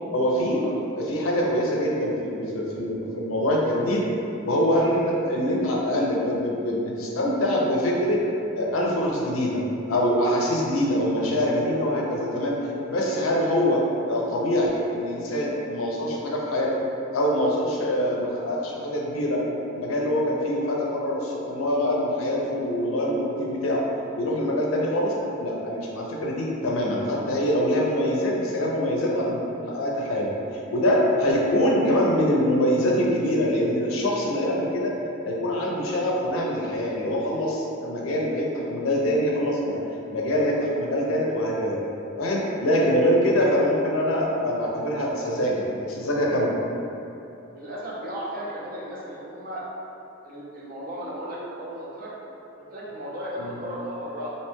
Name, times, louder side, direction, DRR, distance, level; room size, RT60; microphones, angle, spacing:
voice 1, 0.1-0.6 1.0-4.0 4.4-8.2 8.5-9.6 9.9-12.6 12.9-16.7 17.1-19.4 19.7-23.8 24.1-30.3 30.7-34.9 35.2-39.8 40.1-41.8 42.2-46.6 53.4-53.6, equal, 85° left, -3 dB, 0.5 m, -24 dB
voice 2, 43.1-43.5 47.5-49.6 50.2-52.1 52.6-54.3, equal, 45° right, -5 dB, 0.5 m, -35 dB
2.7 x 2.2 x 3.0 m, 2.8 s
head